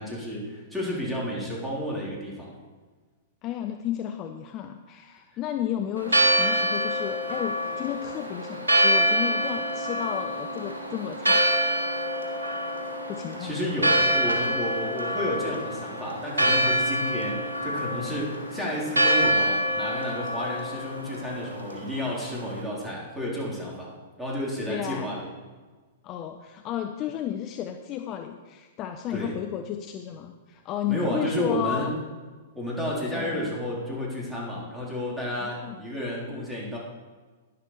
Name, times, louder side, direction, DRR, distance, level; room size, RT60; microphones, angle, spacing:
voice 1, 0.0-2.5 13.4-23.9 24.2-25.3 29.1-29.3 30.9-31.9 32.5-36.8, equal, 5° right, -5 dB, 4.1 m, -31 dB
voice 2, 3.4-11.4 12.2-12.3 13.1-13.6 24.7-25.2 26.0-31.9 33.1-33.5 35.4-35.8, left 10 dB, 30° left, 6 dB, 0.7 m, -33 dB
Church bell, 6.0-22.6, right 1 dB, 75° right, 2.2 m, -26 dB
11.5 x 11.0 x 5.0 m, 1.4 s
figure-of-eight pair, 105°, 0 cm